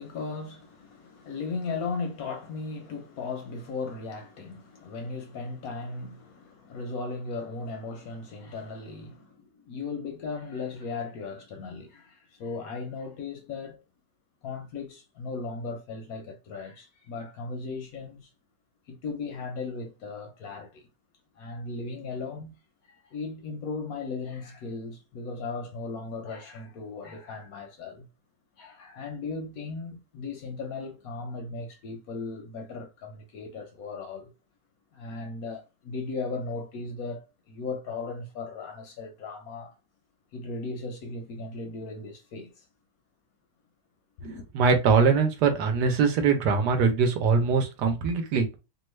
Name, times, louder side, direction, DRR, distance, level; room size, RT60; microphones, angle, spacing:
voice 1, 0.0-13.8 14.4-18.3 18.9-20.9 21.4-22.6 23.0-28.1 28.6-34.3 34.9-39.8 40.3-42.7 44.2-44.5, left 4 dB, 70° left, 0.9 m, -37 dB
voice 2, 44.5-48.5, right 5 dB, 75° right, 1.2 m, -22 dB
3.0 x 2.3 x 3.1 m
omnidirectional pair, 1.9 m